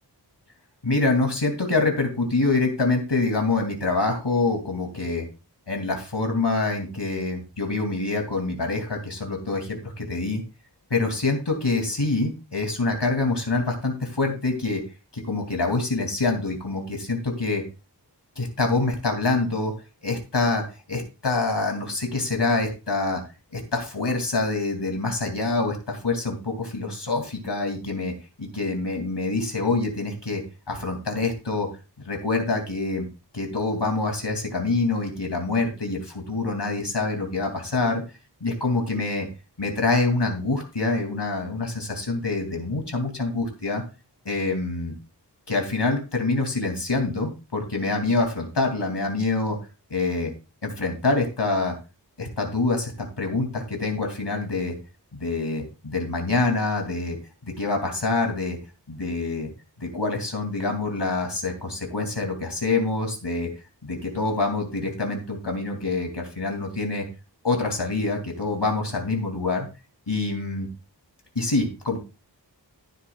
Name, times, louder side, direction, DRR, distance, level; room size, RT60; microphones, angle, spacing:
voice 1, 0.8-5.2 5.7-10.4 10.9-14.8 15.1-17.6 18.4-19.7 20.0-23.2 23.5-28.1 28.4-31.7 32.0-33.1 33.3-38.0 38.4-39.3 39.6-43.8 44.2-45.0 45.5-49.6 49.9-50.3 50.6-51.8 52.2-52.9 53.2-54.8 55.1-57.2 57.4-58.6 58.9-59.5 59.8-63.5 63.8-67.1 67.4-69.7 70.1-70.7 71.3-72.0, left 3 dB, 70° left, 2 dB, 2.8 m, -26 dB
14.5 x 9.7 x 2.4 m, 0.29 s
wide cardioid pair, 50°, 42 cm